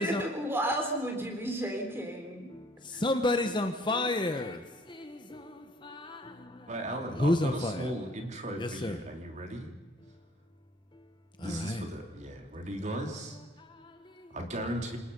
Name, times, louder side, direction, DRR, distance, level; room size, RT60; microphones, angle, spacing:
voice 1, 0.0-2.5, right 1 dB, 15° right, 4.1 m, -32 dB
voice 2, 2.5-6.7 7.1-7.9 8.6-9.0 10.0-10.2 10.9-11.1 11.4-11.9 13.6-14.4, left 1 dB, 25° left, 1.1 m, -32 dB
voice 3, 6.7-9.7 11.4-13.4 14.3-15.0, right 1 dB, 40° right, 3.0 m, -37 dB
28.0 x 19.5 x 5.4 m
head